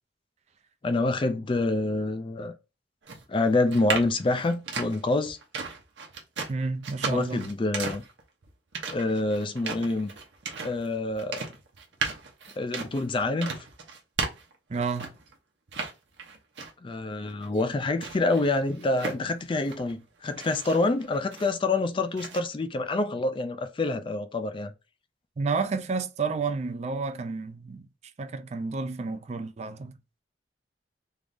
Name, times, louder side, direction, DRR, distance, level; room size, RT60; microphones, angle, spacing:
voice 1, 0.8-2.5 3.3-5.4 7.1-8.0 8.9-10.1 10.6-11.4 12.6-13.5 16.8-24.7, left 2 dB, 30° left, 0.4 m, -27 dB
sound 1, 3.0-15.3 15.7-16.9 17.3-19.9 20.3-21.8 22.2-22.4, right 4 dB, 90° right, 0.9 m, -36 dB
voice 2, 6.5-7.5 14.7-15.1 25.4-27.9 28.2-30.0, right 4 dB, 40° right, 0.4 m, -30 dB
3.3 x 2.6 x 3.4 m
head